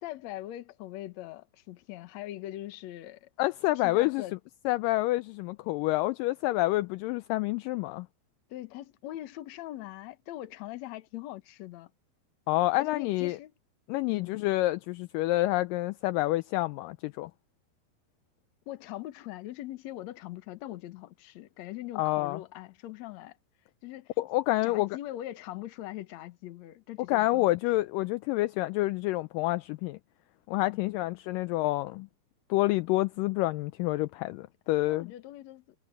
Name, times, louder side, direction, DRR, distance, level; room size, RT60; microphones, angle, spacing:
voice 1, 0.0-3.3 3.8-4.4 8.5-11.9 12.8-13.5 14.1-14.5 18.7-23.4 23.8-24.2 24.6-27.6 30.7-31.0 34.9-35.8, left 15 dB, 65° left, 1.9 m, -41 dB
voice 2, 3.4-4.2 4.7-8.1 12.5-13.4 13.9-17.3 22.0-22.4 24.2-24.9 27.1-30.0 30.5-32.1 32.5-35.1, left 18 dB, 85° left, 2.0 m, -28 dB
omnidirectional pair, 4.4 m